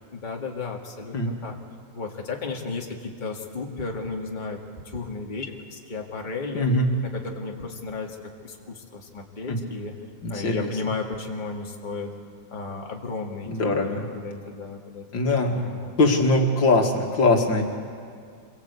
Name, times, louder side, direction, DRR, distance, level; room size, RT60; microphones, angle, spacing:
voice 1, 0.1-1.6 1.9-4.6 4.8-6.7 7.0-8.2 8.4-9.9 10.3-12.1 12.5-15.1 15.5-15.9, left 4 dB, 25° left, 0 dB, 2.1 m, -34 dB
voice 2, 6.5-6.9 9.5-9.6 10.2-10.7 13.5-14.0 15.1-15.6 16.0-17.6, left 2 dB, 70° left, 2 dB, 2.7 m, -21 dB
27.0 x 23.0 x 8.3 m, 2.2 s
omnidirectional pair, 2.1 m